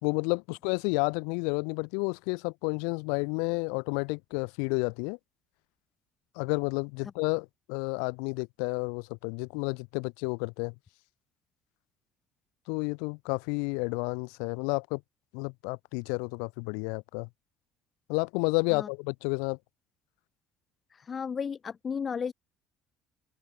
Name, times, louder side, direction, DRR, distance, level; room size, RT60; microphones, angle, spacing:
voice 1, 0.0-5.2 6.4-10.7 12.7-15.0 15.3-17.3 18.1-19.6, left 40 dB or more, 75° left, 3.9 m, -31 dB
voice 2, 20.9-22.3, left 6 dB, 40° left, 7.4 m, -34 dB
hypercardioid pair, 65°, 0 cm